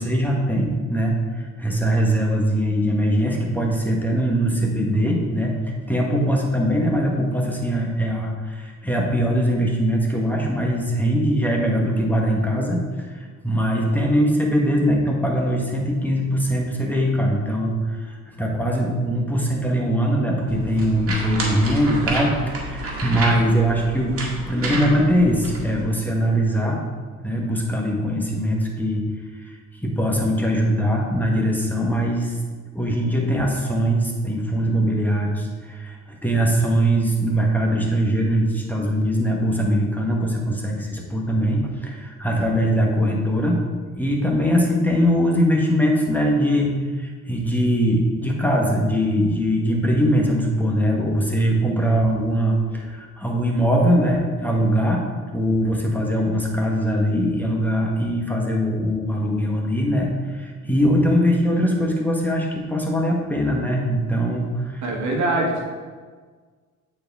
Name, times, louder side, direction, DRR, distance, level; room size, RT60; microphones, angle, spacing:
voice 1, 0.0-5.5 5.9-12.8 13.4-24.1 24.5-26.8 27.2-29.0 29.8-32.4 32.7-43.6 43.9-64.8, equal, 5° left, -1 dB, 1.1 m, -21 dB
sound 1, 20.5-25.8, right 1 dB, 50° right, 1.7 m, -29 dB
voice 2, 64.8-65.6, right 2 dB, 70° right, 0 dB, 1.4 m, -23 dB
8.5 x 4.4 x 3.4 m, 1.5 s
cardioid pair, 90°, 30 cm